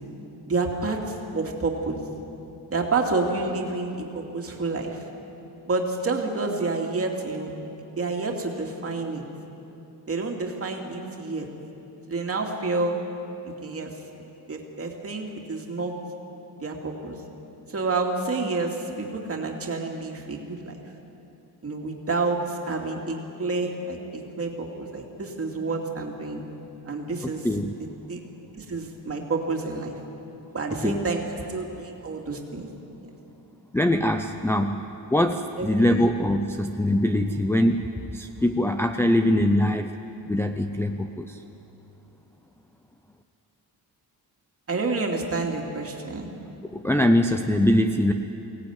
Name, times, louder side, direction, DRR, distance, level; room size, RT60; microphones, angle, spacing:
voice 1, 0.5-2.0 2.7-5.0 5.7-7.5 8.0-9.2 10.1-11.5 12.1-13.0 13.4-13.9 14.5-15.9 16.6-17.2 17.7-20.7 21.6-26.4 26.9-27.5 28.1-28.2 28.5-30.0 30.5-32.7 35.6-36.1 44.7-46.3, right 3 dB, 35° right, 1 dB, 2.5 m, -29 dB
voice 2, 33.7-34.8 35.1-37.8 38.1-39.9 40.3-41.4 46.7-48.1, left 1 dB, 5° left, 4 dB, 0.5 m, -22 dB
23.5 x 17.5 x 9.5 m, 3.0 s
wide cardioid pair, 170°, 40 cm